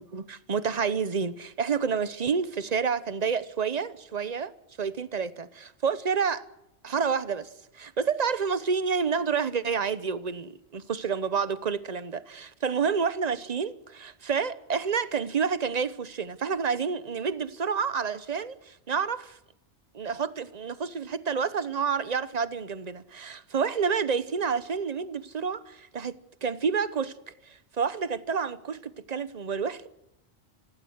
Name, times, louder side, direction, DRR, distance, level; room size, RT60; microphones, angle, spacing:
voice 1, 0.0-4.5 4.8-6.4 6.8-7.5 7.7-19.4 19.9-26.1 26.4-27.1 27.5-29.9, right 6 dB, 40° right, 1.0 m, -29 dB
26.0 x 17.0 x 8.0 m
omnidirectional pair, 1.2 m